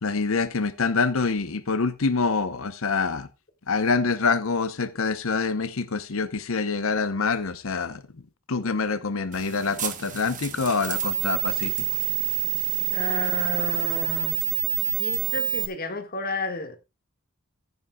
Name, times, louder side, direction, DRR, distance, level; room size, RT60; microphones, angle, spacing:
voice 1, 0.0-3.3 3.7-8.0 8.5-11.7, left 4 dB, 70° left, 0.8 m, -26 dB
sound 1, 9.3-15.7, right 15 dB, 35° right, 1.1 m, -27 dB
voice 2, 12.9-14.4 15.0-16.8, left 3 dB, 45° left, 1.8 m, -32 dB
15.5 x 9.4 x 2.3 m
head